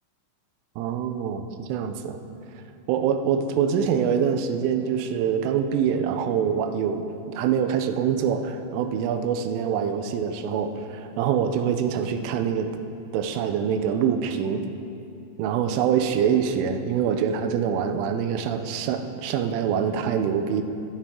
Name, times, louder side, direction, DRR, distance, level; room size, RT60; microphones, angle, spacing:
voice 1, 0.8-2.2 2.9-12.7 13.1-14.7 15.4-20.6, right 7 dB, 90° right, 8 dB, 3.3 m, -25 dB
23.0 x 9.1 x 3.7 m, 2.7 s
omnidirectional pair, 5.5 m